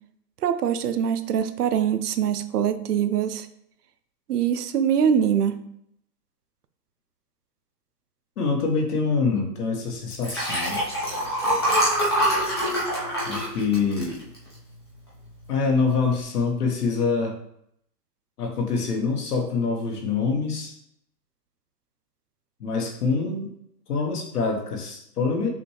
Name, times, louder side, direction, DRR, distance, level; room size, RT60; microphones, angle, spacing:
voice 1, 0.4-3.5 4.3-5.6, right 8 dB, 70° right, 11 dB, 0.6 m, -23 dB
voice 2, 8.4-10.8 13.3-14.2 15.5-17.4 18.4-20.8 22.6-23.5 23.9-25.5, left 4 dB, 65° left, 2 dB, 1.2 m, -25 dB
Liquid, 10.1-14.7 15.2-15.5 15.8-15.9, equal, 15° left, 0.4 m, -25 dB
5.9 x 2.5 x 3.2 m, 0.74 s
hypercardioid pair, 160°, 49 cm